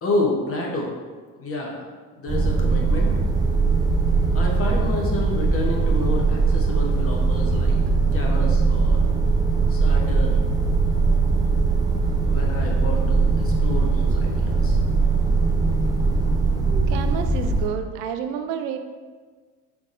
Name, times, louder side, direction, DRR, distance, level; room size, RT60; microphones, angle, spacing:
voice 1, 0.0-0.9 1.4-1.9 2.1-3.1 4.3-7.8 8.1-9.0 9.7-10.4 12.2-14.8, left 2 dB, 30° left, -2 dB, 1.0 m, -29 dB
sound 1, 2.3-17.7, right 4 dB, 10° right, 0.5 m, -20 dB
voice 2, 16.9-18.8, right 7 dB, 60° right, 7 dB, 0.6 m, -29 dB
5.2 x 3.5 x 2.6 m, 1.5 s
hypercardioid pair, 70°, 46 cm